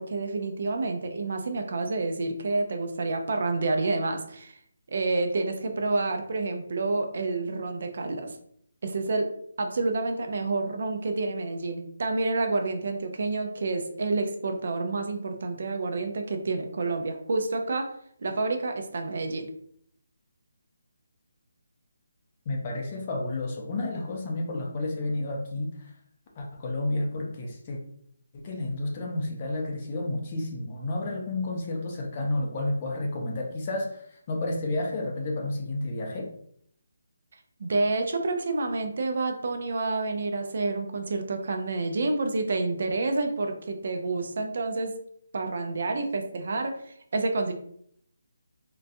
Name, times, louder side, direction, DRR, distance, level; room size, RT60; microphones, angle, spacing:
voice 1, 0.0-4.6 4.9-8.4 8.8-9.3 9.6-17.9 18.2-19.5 37.6-44.9 45.3-47.5, right 3 dB, 50° right, 5 dB, 0.4 m, -29 dB
voice 2, 22.5-25.9 26.4-27.8 28.3-36.3, left 2 dB, 25° left, 0 dB, 0.5 m, -31 dB
3.8 x 2.2 x 2.6 m, 0.66 s
hypercardioid pair, 175°, 0 cm